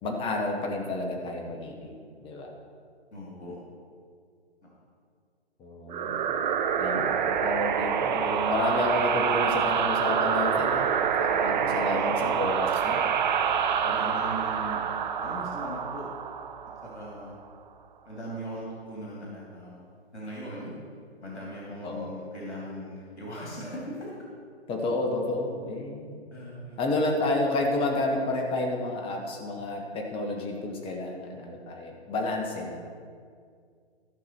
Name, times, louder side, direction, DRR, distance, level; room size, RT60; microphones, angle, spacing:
voice 1, 0.0-2.5 5.6-6.3 6.8-13.1 21.8-22.2 24.7-26.3 26.8-32.9, left 2 dB, 15° left, 2 dB, 1.2 m, -30 dB
voice 2, 3.1-3.6 4.6-4.7 11.3-12.4 13.8-14.8 15.2-16.1 16.8-17.3 18.0-19.8 20.1-20.7 21.2-24.1 26.3-26.8, equal, 85° left, -5 dB, 2.8 m, -39 dB
sound 1, 5.9-17.2, right 7 dB, 45° right, 0.7 m, -27 dB
14.5 x 6.0 x 4.5 m, 2.1 s
figure-of-eight pair, 130°, 33 cm